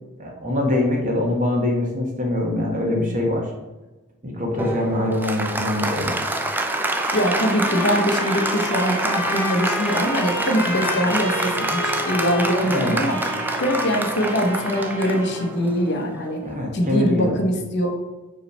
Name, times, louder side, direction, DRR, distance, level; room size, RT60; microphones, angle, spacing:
voice 1, 0.2-3.5 4.2-6.1 12.7-13.0 16.4-17.4, left 1 dB, 35° right, 0 dB, 1.2 m, -23 dB
Applause, 4.6-16.5, right 2 dB, 10° right, 0.4 m, -27 dB
Trumpet, 7.0-15.5, left 1 dB, 15° left, 1.4 m, -31 dB
voice 2, 7.1-13.2 13.6-16.5 16.7-18.0, equal, 50° left, 3 dB, 0.8 m, -23 dB
5.5 x 3.2 x 5.3 m, 1.1 s
head